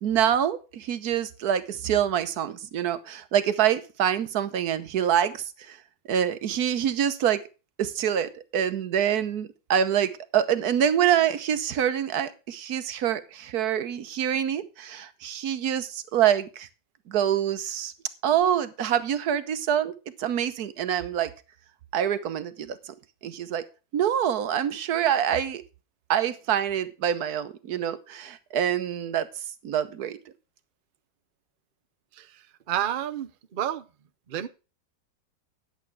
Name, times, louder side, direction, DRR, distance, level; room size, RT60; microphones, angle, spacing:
voice 1, 0.0-5.8 6.1-7.4 7.8-16.7 17.1-17.9 18.2-19.9 20.2-21.3 21.9-22.9 23.2-23.6 23.9-25.6 26.1-29.3 29.6-30.2, right 9 dB, 60° right, 13 dB, 1.3 m, -26 dB
voice 2, 32.1-33.8 34.3-34.5, right 10 dB, 90° right, 12 dB, 0.4 m, -30 dB
11.0 x 8.0 x 4.6 m, 0.32 s
omnidirectional pair, 1.9 m